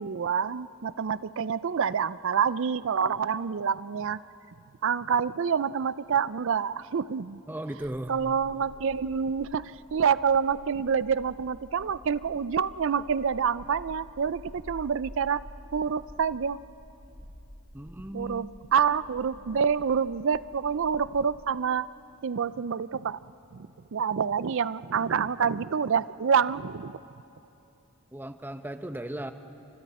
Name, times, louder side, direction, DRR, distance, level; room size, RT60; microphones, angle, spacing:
voice 1, 0.0-4.2 4.8-7.4 8.1-15.4 15.7-16.6 18.1-18.5 18.7-21.9 22.2-23.2 23.5-27.0, right 6 dB, 60° right, 17 dB, 0.4 m, -27 dB
voice 2, 7.5-8.1 17.7-18.5 28.1-29.3, right 1 dB, 10° right, 8 dB, 0.7 m, -36 dB
sound 1, 7.8-21.3, equal, 15° left, 4.0 m, -50 dB
30.0 x 26.5 x 4.2 m, 2.8 s
head